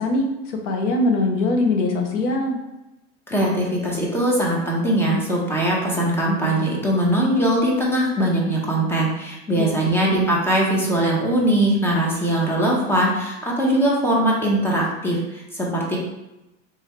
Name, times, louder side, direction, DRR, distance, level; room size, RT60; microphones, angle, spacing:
voice 1, 0.0-2.6 9.6-10.3, left 2 dB, 75° left, 3 dB, 1.0 m, -22 dB
voice 2, 3.3-16.0, right 1 dB, 5° left, -3 dB, 0.9 m, -21 dB
3.5 x 3.3 x 3.3 m, 0.94 s
supercardioid pair, 135°, 36 cm